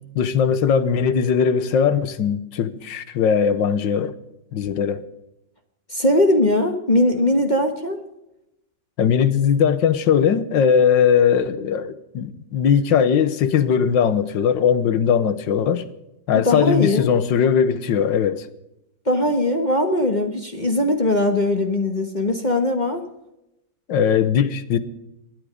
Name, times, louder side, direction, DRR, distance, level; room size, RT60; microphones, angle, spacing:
voice 1, 0.1-4.1 4.5-5.0 9.0-15.9 16.3-18.5 23.9-24.8, left 7 dB, 80° left, 1.7 m, -19 dB
voice 2, 5.9-8.0 16.3-17.1 19.1-23.0, left 1 dB, 30° left, 1.2 m, -20 dB
27.0 x 9.9 x 5.1 m
omnidirectional pair, 2.0 m